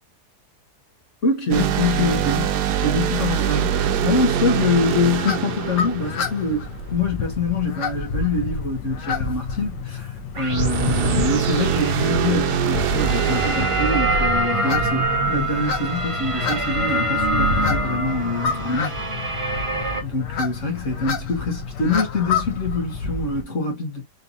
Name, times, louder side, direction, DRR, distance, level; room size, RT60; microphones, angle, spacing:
voice 1, 1.2-19.0 20.0-24.0, left 3 dB, 50° left, 1.8 m, -25 dB
sound 1, 1.5-7.0 10.5-15.2, right 9 dB, 75° right, 1.2 m, -24 dB
sound 2, 4.8-23.4, left 4 dB, 80° left, 1.5 m, -29 dB
sound 3, 10.3-20.0, right 1 dB, 35° right, 0.5 m, -25 dB
4.1 x 3.4 x 2.7 m
omnidirectional pair, 1.8 m